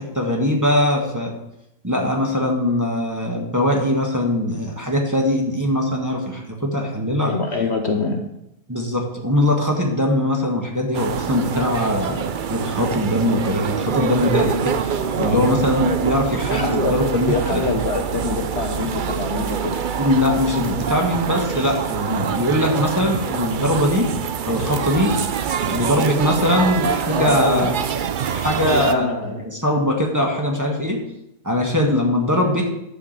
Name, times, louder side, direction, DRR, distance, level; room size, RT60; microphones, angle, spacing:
voice 1, 0.0-1.3 1.8-7.3 8.7-17.7 20.0-24.1 24.5-25.1 25.6-27.7 28.3-31.0 31.4-32.6, left 1 dB, 15° right, -1 dB, 1.5 m, -21 dB
voice 2, 7.2-8.2 15.0-15.5 16.4-17.0 17.3-19.8 27.1-27.8 28.6-29.4, left 4 dB, 50° left, 4 dB, 1.1 m, -25 dB
sound 1, 10.9-28.9, right 7 dB, 60° right, 0.5 m, -25 dB
10.5 x 4.8 x 7.4 m, 0.85 s
omnidirectional pair, 1.5 m